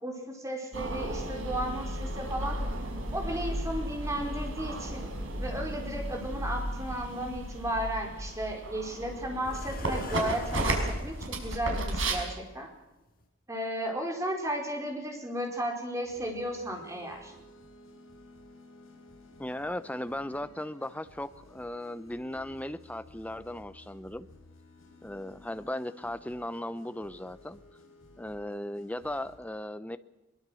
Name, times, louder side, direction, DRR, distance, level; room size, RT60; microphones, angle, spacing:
voice 1, 0.0-2.6 3.1-5.1 5.4-12.7 13.5-17.3, right 1 dB, 15° right, 1 dB, 4.6 m, -34 dB
sound 1, 0.7-12.1, right 1 dB, 75° right, 5.4 m, -34 dB
sound 2, 8.3-8.4 9.4-11.2 12.5-12.6 13.1-13.2, left 3 dB, 45° left, 5.9 m, -45 dB
sound 3, 16.0-29.4, left 1 dB, 85° left, 7.9 m, -55 dB
voice 2, 19.4-24.3 25.0-27.6 28.2-30.0, left 1 dB, 5° left, 12 dB, 0.8 m, -37 dB
22.5 x 22.5 x 6.4 m, 1.0 s
head